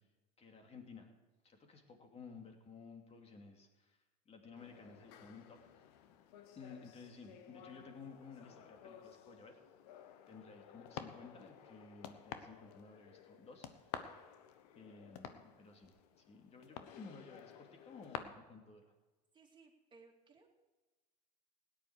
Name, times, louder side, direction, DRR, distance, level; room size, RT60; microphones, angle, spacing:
voice 1, 0.4-1.1 1.4-4.0 4.3-5.6 6.5-9.6 10.3-14.1 14.7-18.9, left 4 dB, 30° left, 3 dB, 2.7 m, -55 dB
sound 1, 4.6-18.2, left 10 dB, 70° left, 1.1 m, -52 dB
voice 2, 19.3-20.5, right 4 dB, 20° right, 1 dB, 2.8 m, -62 dB
17.0 x 10.0 x 4.8 m, 1.2 s
hypercardioid pair, 85°, 21 cm